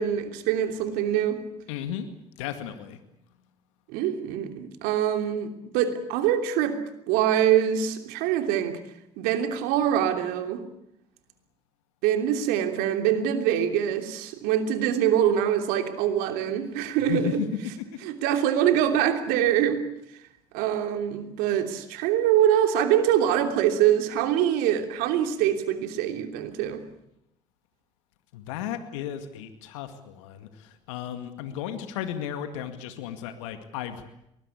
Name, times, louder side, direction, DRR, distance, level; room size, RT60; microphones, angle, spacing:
voice 1, 0.0-1.4 3.9-6.8 7.1-8.8 9.2-10.6 12.0-17.4 18.0-19.8 20.5-26.8, right 10 dB, 75° right, 7 dB, 3.1 m, -24 dB
voice 2, 1.7-2.1 2.4-3.0 17.0-17.9 28.3-34.0, left 10 dB, 80° left, 9 dB, 2.1 m, -34 dB
23.5 x 20.5 x 8.4 m, 0.81 s
hypercardioid pair, 65°, 16 cm